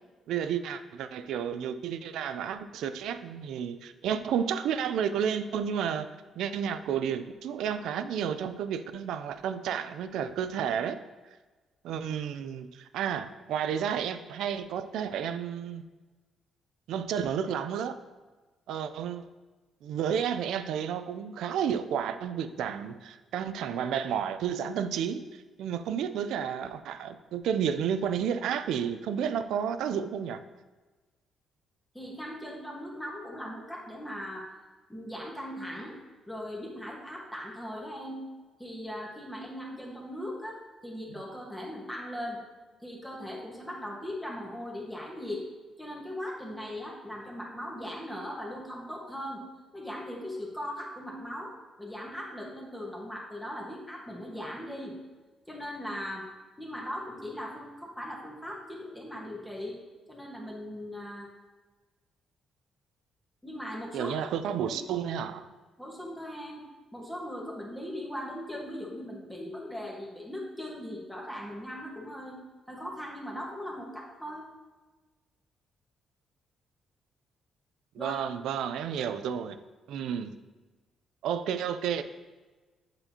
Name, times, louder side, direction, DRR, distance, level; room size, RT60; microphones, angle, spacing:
voice 1, 0.3-6.1 6.4-11.0 11.8-15.8 16.9-18.0 18.7-19.3 19.8-30.4 63.9-65.5 78.0-79.6 79.9-80.3 81.2-82.0, right 8 dB, 80° right, 11 dB, 0.3 m, -31 dB
voice 2, 31.9-34.5 34.9-36.0 36.3-38.3 38.6-42.4 42.8-45.5 45.8-49.4 49.7-51.5 51.8-55.0 55.5-56.3 56.6-59.8 60.1-61.3 63.4-64.1 64.5-64.8 65.8-66.6 66.9-72.4 72.7-74.4 77.9-78.2, equal, 5° left, -3 dB, 1.3 m, -39 dB
7.9 x 4.3 x 2.8 m, 1.3 s
cardioid pair, 90°, 0 cm